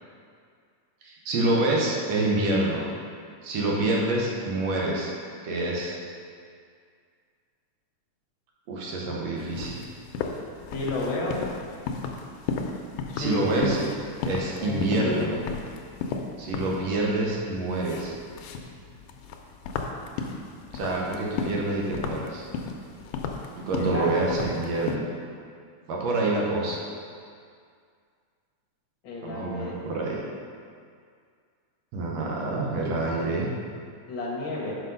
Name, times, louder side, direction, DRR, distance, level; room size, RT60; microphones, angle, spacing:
voice 1, 1.0-2.8 3.4-5.1 5.4-6.0 8.7-9.8 13.1-13.8 14.2-15.3 16.4-18.1 20.7-22.4 23.6-25.0 25.9-26.8 29.2-30.2 31.9-33.5, right 2 dB, 65° right, -3 dB, 1.9 m, -27 dB
sound 1, 9.4-25.0, left 4 dB, 85° left, 2.1 m, -35 dB
voice 2, 10.7-11.4 13.1-13.5 14.6-15.4 23.7-24.3 29.0-29.8 33.3-33.5 34.1-34.7, left 2 dB, 55° left, -3 dB, 1.4 m, -31 dB
6.0 x 5.1 x 5.3 m, 2.2 s
omnidirectional pair, 3.6 m